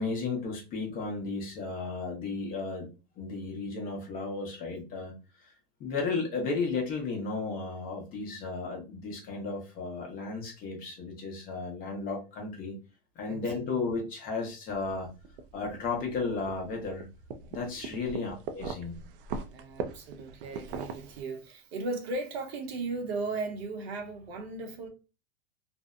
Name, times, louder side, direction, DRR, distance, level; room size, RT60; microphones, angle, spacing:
voice 1, 0.0-5.1 5.4-5.5 5.8-12.7 13.2-15.1 15.5-17.1 17.5-19.0, left 4 dB, 30° left, 0.8 m, -34 dB
voice 2, 13.3-13.8 18.1-18.3 19.5-24.9, right 3 dB, 80° right, 0.9 m, -37 dB
sound 1, 14.7-21.2, right 5 dB, 60° right, 0.5 m, -41 dB
2.6 x 2.1 x 2.4 m
supercardioid pair, 145°, 31 cm